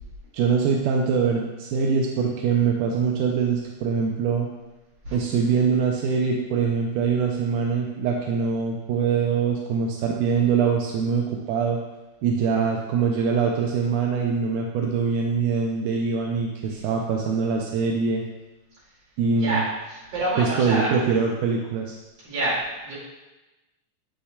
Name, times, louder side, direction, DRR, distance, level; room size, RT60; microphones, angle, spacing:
voice 1, 0.3-4.5 5.1-11.8 12.2-18.2 19.2-19.6 20.4-22.0, right 5 dB, 85° right, 0 dB, 2.1 m, -23 dB
voice 2, 19.4-21.0 22.2-23.0, right 1 dB, 50° right, -7 dB, 3.1 m, -27 dB
8.5 x 5.6 x 2.2 m, 1.1 s
omnidirectional pair, 3.6 m